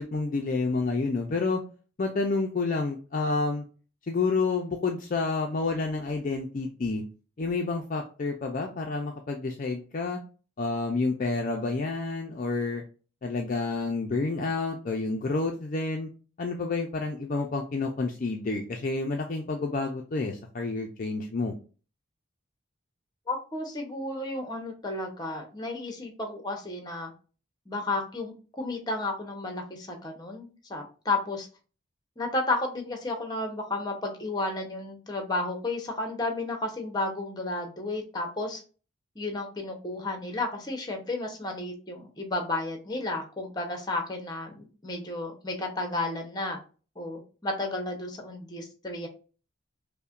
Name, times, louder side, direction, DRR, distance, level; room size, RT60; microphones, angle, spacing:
voice 1, 0.0-1.6 2.0-3.6 4.1-7.0 7.4-10.2 10.6-12.8 13.2-16.1 16.4-21.5, left 3 dB, 40° left, 2 dB, 0.4 m, -29 dB
voice 2, 23.3-27.1 27.7-31.5 32.2-38.6 39.2-46.6 47.0-49.1, left 2 dB, 20° left, 3 dB, 0.7 m, -32 dB
5.4 x 2.1 x 2.4 m, 0.36 s
head